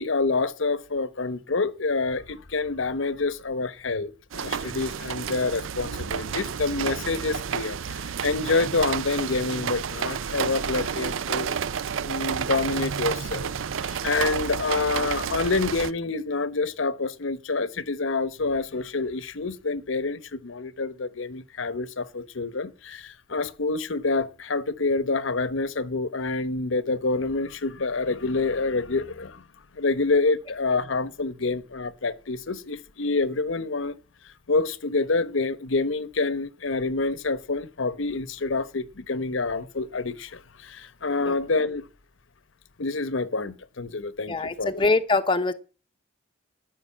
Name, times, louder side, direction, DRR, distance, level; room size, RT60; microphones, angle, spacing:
voice 1, 0.0-11.6 12.0-29.4 29.7-34.0 34.2-41.8 42.8-44.9, left 3 dB, 75° left, 0.9 m, -27 dB
sound 1, 4.3-15.9, right 7 dB, 80° right, 0.5 m, -30 dB
voice 2, 44.3-45.5, left 3 dB, 25° left, 0.8 m, -23 dB
13.5 x 6.3 x 8.4 m
head